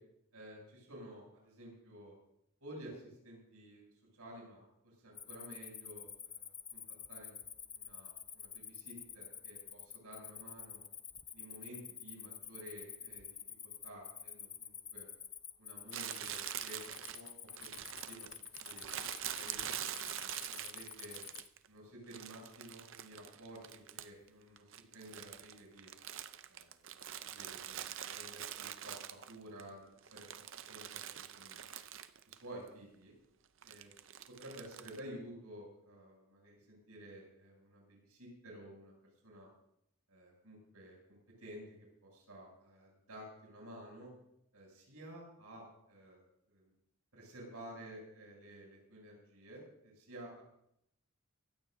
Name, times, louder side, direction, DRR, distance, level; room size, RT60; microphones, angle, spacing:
voice 1, 0.3-2.1 2.6-6.8 7.1-7.4 7.6-10.8 11.3-13.3 13.6-15.1 15.6-17.8 18.1-18.8 19.2-21.2 21.7-25.9 26.5-26.7 27.1-27.8 28.1-30.4 30.7-31.7 32.3-33.1 33.6-33.9 34.3-38.9 39.2-39.5 40.1-44.1 44.5-46.2 46.5-46.6 47.1-50.4, right 1 dB, 85° right, -1 dB, 7.4 m, -52 dB
Cricket, 5.1-21.5, left 8 dB, 20° left, 0.6 m, -49 dB
Crumpling crinkling, 15.9-21.7 22.1-24.3 24.6-29.6 30.0-32.4 32.7-32.8 33.6-35.0, right 10 dB, 60° right, 0.6 m, -45 dB
23.5 x 15.5 x 2.7 m, 0.75 s
head